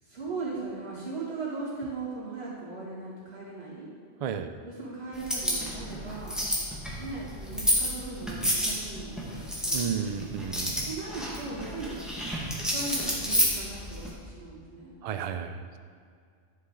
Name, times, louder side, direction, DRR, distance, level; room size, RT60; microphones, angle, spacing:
voice 1, 0.0-3.9 4.6-6.4 7.0-10.2 10.8-12.0 12.7-15.0, right 3 dB, 60° right, -8 dB, 2.8 m, -38 dB
voice 2, 4.2-4.5 9.7-10.9 15.0-15.8, right 7 dB, 75° right, 8 dB, 0.3 m, -32 dB
sound 1, 5.1-14.1, equal, ahead, 1.5 m, -30 dB
11.0 x 6.4 x 3.8 m, 2.1 s
omnidirectional pair, 1.2 m